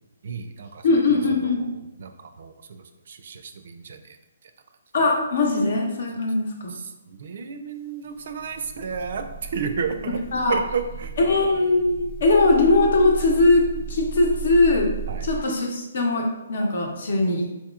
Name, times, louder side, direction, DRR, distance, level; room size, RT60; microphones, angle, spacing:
voice 1, 0.2-4.2 6.7-10.2 10.5-11.1 15.1-15.2, right 6 dB, 60° right, 8 dB, 0.4 m, -32 dB
voice 2, 0.8-1.6 4.9-6.7 10.3-10.5 11.3-14.9 15.2-17.5, left 2 dB, 65° left, 1 dB, 0.9 m, -20 dB
sound 1, 8.0-15.4, right 6 dB, ahead, 0.4 m, -35 dB
4.1 x 2.9 x 2.4 m, 1.0 s
hypercardioid pair, 155°, 0 cm